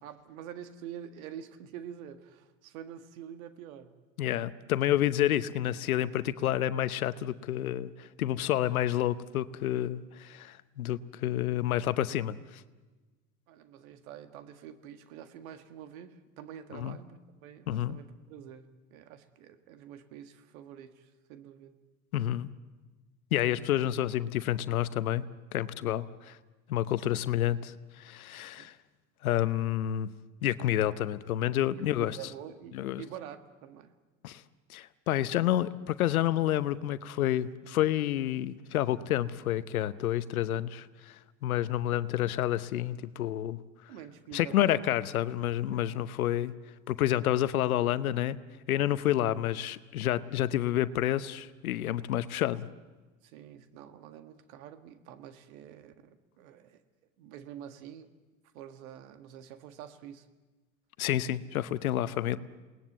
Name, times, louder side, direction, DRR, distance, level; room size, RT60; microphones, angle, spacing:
voice 1, 0.0-4.0 8.7-8.8 13.5-21.8 27.0-27.2 28.6-28.7 31.7-33.9 43.9-44.8 45.7-45.9 53.2-56.8 57.2-58.1 58.5-60.3, right 9 dB, 75° right, 9 dB, 1.7 m, -47 dB
voice 2, 4.2-12.6 16.7-17.0 17.7-18.0 22.1-22.5 23.3-25.3 25.5-26.4 26.7-28.7 29.2-30.1 30.4-32.2 32.7-33.0 34.2-34.4 34.7-43.6 44.3-46.5 46.9-48.4 48.7-52.7 61.0-62.4, left 12 dB, 90° left, 14 dB, 0.9 m, -29 dB
28.0 x 19.5 x 8.1 m, 1.3 s
hypercardioid pair, 80°, 41 cm